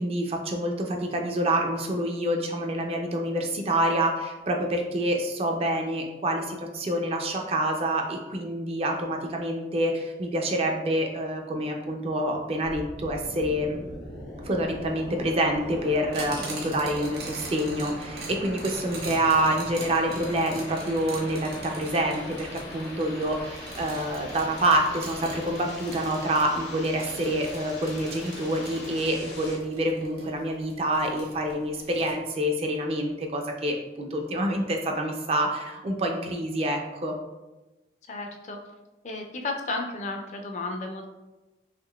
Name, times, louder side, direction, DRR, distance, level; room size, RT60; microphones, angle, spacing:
voice 1, 0.0-13.8 14.4-37.2, right 1 dB, 35° right, 3 dB, 0.3 m, -27 dB
sound 1, 12.6-29.6, left 1 dB, 85° left, 0.8 m, -41 dB
sound 2, 16.1-32.1, right 2 dB, 65° right, 0.9 m, -42 dB
voice 2, 38.1-38.6 39.0-41.0, left 2 dB, 40° left, 3 dB, 0.4 m, -33 dB
3.6 x 2.9 x 2.3 m, 1.1 s
head